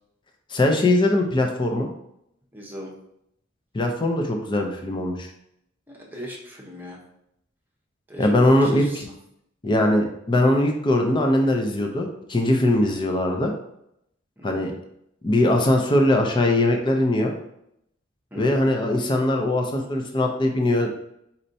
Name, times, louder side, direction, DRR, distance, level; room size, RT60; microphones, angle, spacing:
voice 1, 0.5-1.9 3.7-5.3 8.2-8.8 9.6-13.5 14.4-14.7 15.2-17.3 18.4-21.0, left 1 dB, 25° left, 2 dB, 0.5 m, -21 dB
voice 2, 2.5-2.9 5.9-7.0 8.1-9.1 14.4-14.7 18.3-18.6, equal, 10° right, -2 dB, 0.9 m, -39 dB
4.2 x 4.2 x 2.7 m, 0.77 s
head